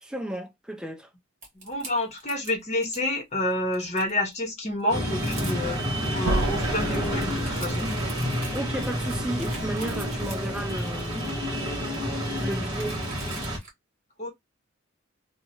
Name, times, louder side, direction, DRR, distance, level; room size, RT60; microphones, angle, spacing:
voice 1, 0.0-1.1 8.5-11.2 12.4-13.0, right 1 dB, 5° right, 0.4 m, -33 dB
sound 1, 1.4-3.1 3.5-4.3 4.8-4.9 5.1-6.1 6.6-13.7, right 3 dB, 35° right, 1.5 m, -45 dB
voice 2, 1.5-5.8 6.1-7.9 14.2-14.3, left 1 dB, 35° left, 1.1 m, -29 dB
sound 2, 4.9-13.6, equal, 20° right, 1.2 m, -29 dB
sound 3, 6.2-11.0, right 2 dB, 75° right, 0.5 m, -34 dB
2.8 x 2.3 x 2.8 m
head